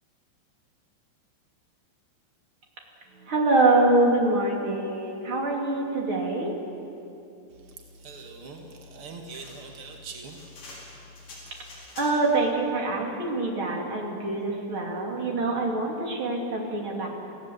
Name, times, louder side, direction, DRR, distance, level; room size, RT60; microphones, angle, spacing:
voice 1, 3.2-6.5 12.0-17.1, right 2 dB, 35° right, -1 dB, 2.9 m, -25 dB
voice 2, 7.5-11.8, right 3 dB, 70° right, 2 dB, 1.2 m, -44 dB
sound 1, 9.3-12.4, left 2 dB, 45° left, 6.4 m, -47 dB
28.5 x 16.5 x 7.8 m, 2.8 s
omnidirectional pair, 5.3 m